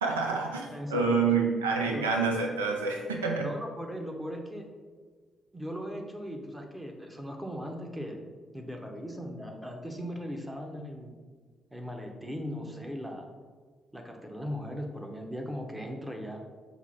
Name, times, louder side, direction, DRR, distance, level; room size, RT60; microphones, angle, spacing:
voice 1, 0.0-3.5, right 4 dB, 85° right, 2 dB, 0.3 m, -28 dB
voice 2, 0.7-1.3 1.9-2.1 3.4-4.7 5.5-8.3 8.5-11.2 11.7-13.3 13.9-16.4, equal, 10° right, 2 dB, 0.8 m, -38 dB
5.9 x 2.0 x 4.4 m, 1.5 s
figure-of-eight pair, 40°, 0 cm